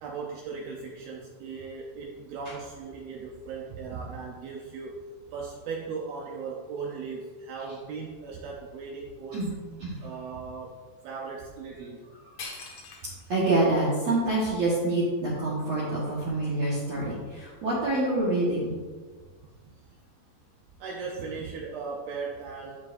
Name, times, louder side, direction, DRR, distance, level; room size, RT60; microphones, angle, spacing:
voice 1, 0.0-5.0 5.3-9.5 10.0-10.8 11.0-12.0 19.6-19.7 20.8-22.8, right 5 dB, 80° right, -2 dB, 2.2 m, -37 dB
sound 1, 12.0-12.1 12.4-13.3 13.9-14.0 14.6-16.0, left 3 dB, 55° left, 2.0 m, -44 dB
voice 2, 13.3-18.7, right 2 dB, 65° right, -8 dB, 1.7 m, -26 dB
14.0 x 4.8 x 2.6 m, 1.5 s
omnidirectional pair, 5.1 m